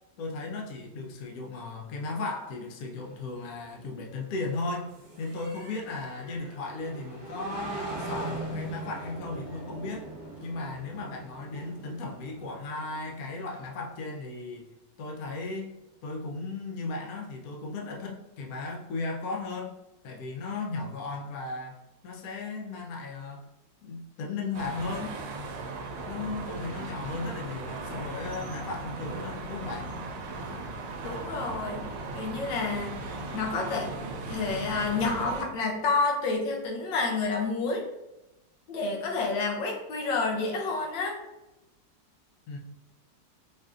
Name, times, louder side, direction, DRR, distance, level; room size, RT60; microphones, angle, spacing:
voice 1, 0.2-4.9 5.2-10.1 10.4-14.7 15.0-15.7 16.0-19.7 20.0-23.4 23.8-25.2 26.1-29.9 42.5-42.6, left 3 dB, 65° left, 0 dB, 0.9 m, -36 dB
sound 1, 3.0-13.7, right 2 dB, 35° right, 1.3 m, -41 dB
sound 2, 24.5-35.4, right 3 dB, 80° right, 1.2 m, -37 dB
voice 2, 31.0-31.9 32.1-33.0 33.3-33.9 34.3-37.9 38.7-41.2, left 3 dB, 85° left, 0 dB, 1.4 m, -29 dB
4.8 x 2.5 x 2.4 m, 0.94 s
omnidirectional pair, 2.0 m